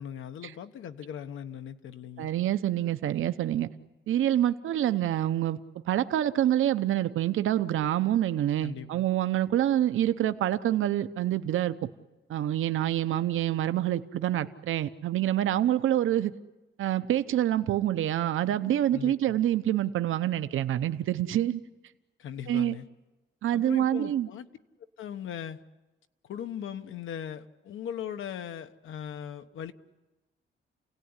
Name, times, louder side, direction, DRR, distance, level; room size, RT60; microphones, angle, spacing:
voice 1, 0.0-2.3 8.6-9.0 18.9-19.4 22.2-22.9 23.5-24.5 25.0-25.6 26.2-29.7, left 9 dB, 80° left, 1.2 m, -39 dB
voice 2, 2.2-3.7 4.1-5.6 5.9-11.8 12.3-16.3 16.8-21.6 22.5-22.7 23.4-24.3, right 12 dB, 90° right, 0.8 m, -26 dB
29.0 x 17.5 x 9.7 m
wide cardioid pair, 170°, 20 cm